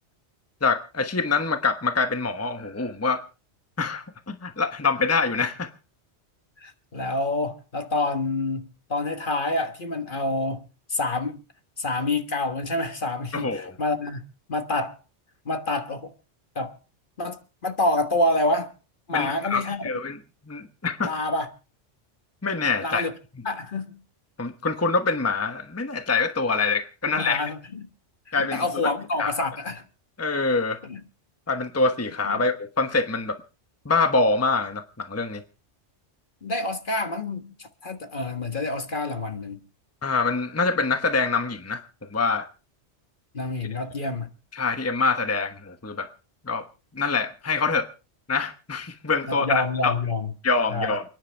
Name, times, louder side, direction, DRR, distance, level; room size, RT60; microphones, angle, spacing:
voice 1, 0.6-3.2 3.8-5.7 13.3-13.7 19.1-20.2 20.5-21.1 22.4-23.0 24.4-27.4 28.3-28.9 29.2-29.3 30.2-30.8 31.5-33.4 33.8-35.4 40.0-41.8 42.1-42.5 44.5-46.1 46.5-46.6 46.9-47.9 48.3-49.9 50.4-51.0, left 4 dB, 15° left, 1.0 m, -25 dB
voice 2, 6.6-11.4 11.8-15.0 15.4-16.1 16.5-16.8 17.2-18.7 19.1-19.8 21.0-21.5 22.8-23.1 23.4-24.0 27.2-27.9 28.3-29.8 30.8-31.0 32.3-32.4 36.4-39.6 43.3-44.3 49.3-50.3 50.7-50.9, left 2 dB, 45° left, 1.5 m, -27 dB
29.0 x 10.5 x 3.4 m
omnidirectional pair, 1.2 m